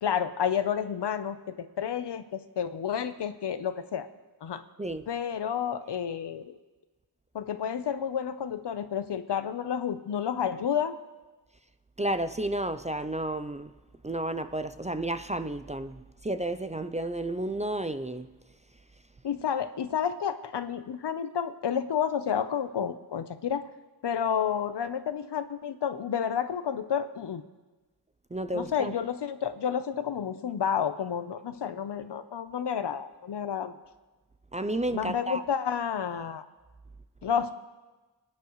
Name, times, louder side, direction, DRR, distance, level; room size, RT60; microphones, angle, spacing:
voice 1, 0.0-4.1 4.4-4.6 5.1-6.5 7.3-10.9 19.2-23.7 24.0-27.4 28.5-33.8 34.9-36.4 37.2-37.5, left 8 dB, 80° left, 0.8 m, -30 dB
voice 2, 12.0-13.7 14.0-18.3 28.3-28.9 34.5-35.4, right 1 dB, 20° right, 0.4 m, -32 dB
24.5 x 9.5 x 3.1 m
wide cardioid pair, 115°, 41 cm